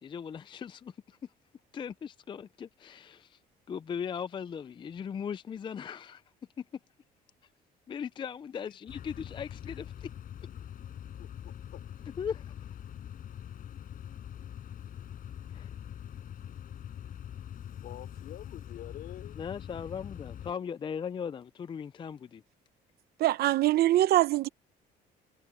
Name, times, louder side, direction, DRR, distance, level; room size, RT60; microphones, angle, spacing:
voice 1, 0.0-1.2 1.7-3.4 3.7-6.2 6.6-6.7 7.9-10.1 12.2-12.6 15.5-15.7 19.4-22.4, left 7 dB, 30° left, 0.4 m, -38 dB
sound 1, 8.9-20.5, left 10 dB, 55° left, 7.9 m, -43 dB
voice 2, 11.2-11.8 17.8-19.4, left 13 dB, 70° left, 4.1 m, -47 dB
voice 3, 23.2-24.5, right 14 dB, 65° right, 0.8 m, -23 dB
cardioid pair, 110°, 17 cm